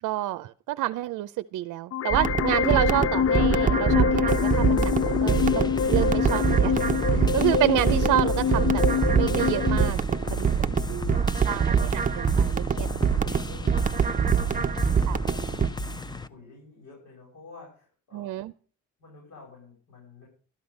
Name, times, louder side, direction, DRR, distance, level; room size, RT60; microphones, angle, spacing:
voice 1, 0.0-6.8 7.1-10.0 10.3-10.5 10.9-11.2 11.4-12.9 15.1-15.2 18.1-18.5, right 15 dB, 85° right, 12 dB, 0.6 m, -29 dB
sound 1, 1.9-9.9, left 7 dB, 55° left, 0.5 m, -25 dB
sound 2, 2.1-15.7, right 7 dB, 25° right, 0.7 m, -25 dB
sound 3, 4.3-16.3, left 1 dB, 15° left, 0.7 m, -34 dB
voice 2, 10.1-11.7 12.6-18.4 19.0-20.3, left 4 dB, 75° left, -3 dB, 7.0 m, -50 dB
12.5 x 11.5 x 5.3 m, 0.41 s
cardioid pair, 90°, 30 cm